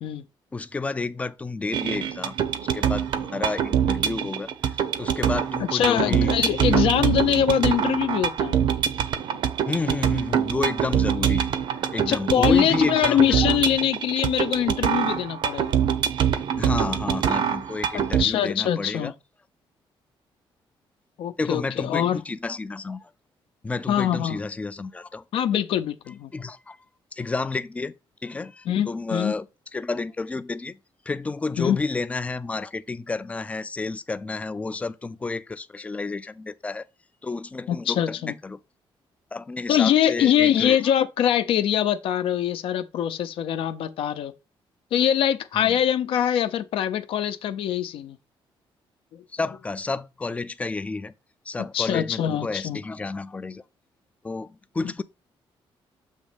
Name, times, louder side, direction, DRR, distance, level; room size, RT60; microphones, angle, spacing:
voice 1, 0.5-2.4 2.7-6.3 6.7-6.8 9.7-11.5 11.9-13.6 16.6-19.1 21.4-23.1 23.6-25.2 26.3-26.8 27.1-27.9 28.2-29.5 29.7-30.8 31.1-36.9 37.2-38.6 39.3-40.8 45.5-45.8 49.3-51.1 51.5-53.6 54.2-55.0, left 3 dB, 15° left, 0.4 m, -31 dB
sound 1, 1.7-18.2, right 9 dB, 60° right, 0.7 m, -24 dB
voice 2, 5.7-8.6 12.1-15.8 18.2-19.1 21.2-22.2 23.9-24.4 25.3-26.3 28.7-29.3 31.6-31.8 37.7-38.3 39.7-44.3 44.9-48.2 49.1-49.2 51.7-52.8, left 10 dB, 75° left, 0.7 m, -23 dB
7.4 x 3.1 x 5.0 m
cardioid pair, 170°, 9 cm